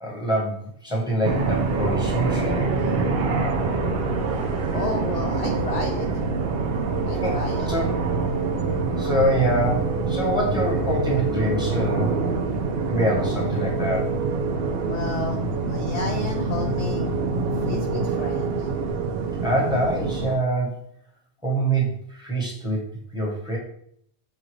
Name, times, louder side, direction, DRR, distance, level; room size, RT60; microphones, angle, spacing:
voice 1, 0.0-2.7 7.2-7.4 7.7-7.9 9.0-12.1 12.9-14.2 19.4-20.8 21.4-23.6, right 1 dB, 5° right, -3 dB, 1.0 m, -25 dB
sound 1, 1.2-20.4, right 4 dB, 65° right, 0.8 m, -25 dB
voice 2, 4.7-6.1 7.1-7.7 14.9-15.4 15.7-17.0 17.6-18.7, left 4 dB, 55° left, 1 dB, 0.4 m, -32 dB
5.9 x 2.4 x 3.1 m, 0.66 s
omnidirectional pair, 1.2 m